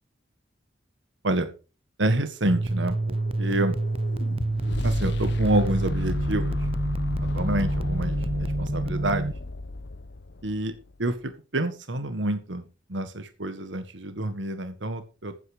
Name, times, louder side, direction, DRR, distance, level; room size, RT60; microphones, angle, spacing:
voice 1, 2.0-3.8 4.8-6.6 7.3-9.3 10.4-10.7 11.0-12.6 12.9-15.5, right 1 dB, 75° right, 9 dB, 1.7 m, -28 dB
sound 1, 2.5-9.3, right 2 dB, 30° right, 0.5 m, -28 dB
sound 2, 2.6-10.6, left 2 dB, 70° left, 1.0 m, -32 dB
15.0 x 9.2 x 5.0 m, 0.34 s
head